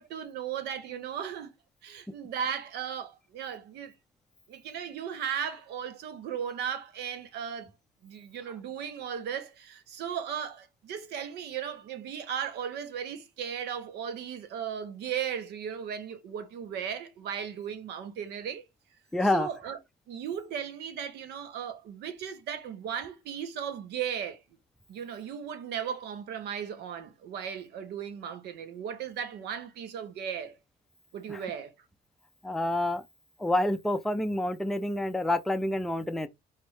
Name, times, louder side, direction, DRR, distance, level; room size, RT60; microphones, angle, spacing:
voice 1, 0.0-1.5 1.8-3.9 4.5-7.7 8.0-18.7 19.2-19.8 20.1-24.4 24.9-30.6 31.1-31.7, right 8 dB, 75° right, 1.0 m, -36 dB
voice 2, 19.1-19.5 31.3-31.4 32.4-33.0 33.4-36.3, left 1 dB, ahead, 0.5 m, -28 dB
4.2 x 3.1 x 3.2 m
cardioid pair, 110°, 17 cm